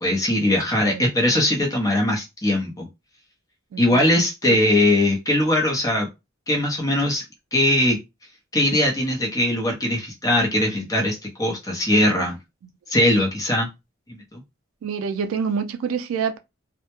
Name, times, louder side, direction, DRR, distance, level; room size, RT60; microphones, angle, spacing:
voice 1, 0.0-2.9 3.8-6.1 6.5-7.2 7.5-8.0 8.5-12.4 12.9-13.7 14.1-14.4, left 1 dB, 15° left, 0.6 m, -20 dB
voice 2, 3.7-4.2 4.5-4.6 14.8-16.4, right 6 dB, 75° right, 0.3 m, -27 dB
2.1 x 2.0 x 2.9 m
head